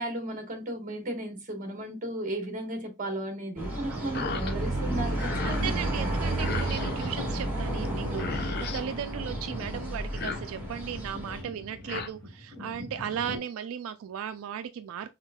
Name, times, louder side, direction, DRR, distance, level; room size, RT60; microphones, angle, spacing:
voice 1, 0.0-6.1, right 1 dB, 40° right, 1.2 m, -35 dB
sound 1, 3.6-11.4, right 1 dB, 10° right, 1.7 m, -32 dB
sound 2, 4.1-4.5 4.9-5.7 6.4-7.1 7.8-7.9 8.1-8.8 10.0-10.8 11.6-12.1, left 5 dB, 50° left, 0.5 m, -36 dB
voice 2, 5.4-15.1, right 8 dB, 75° right, 0.3 m, -36 dB
sound 3, 7.1-13.4, left 2 dB, 10° left, 2.3 m, -41 dB
5.7 x 3.5 x 2.2 m
head